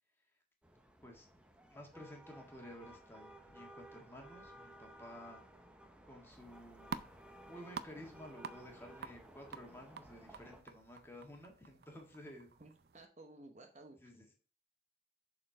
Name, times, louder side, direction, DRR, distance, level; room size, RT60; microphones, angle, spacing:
sound 1, 0.6-10.6, right 1 dB, 5° right, 0.8 m, -57 dB
voice 1, 1.7-5.4 6.1-7.0 7.4-12.5 14.0-14.3, equal, 15° left, 1 dB, 1.6 m, -53 dB
sound 2, 6.3-13.0, right 5 dB, 55° right, 0.5 m, -50 dB
voice 2, 12.6-14.0, right 2 dB, 40° right, 4 dB, 1.0 m, -55 dB
7.1 x 4.4 x 5.7 m, 0.40 s
head